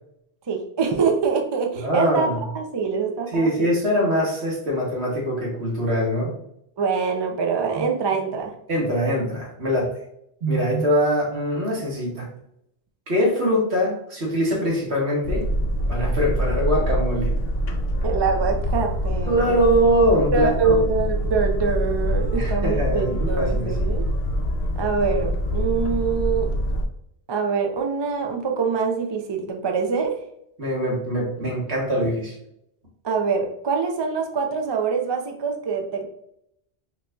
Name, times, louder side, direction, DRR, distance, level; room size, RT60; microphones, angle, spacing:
voice 1, 0.5-2.3 2.5-3.7 6.8-8.5 18.0-19.6 20.3-24.1 24.8-26.5 27.3-30.2 33.0-36.1, right 5 dB, 40° right, 2 dB, 0.4 m, -24 dB
voice 2, 1.8-2.4 3.3-6.3 7.7-7.8 8.7-9.9 10.4-12.3 13.1-15.5 15.9-17.3 19.3-20.8 22.4-23.8 30.6-32.3, equal, 70° right, -3 dB, 1.7 m, -23 dB
Boat Water vehicle, 15.2-26.9, equal, 70° left, 0.8 m, -25 dB
5.7 x 2.8 x 2.3 m, 0.76 s
omnidirectional pair, 1.1 m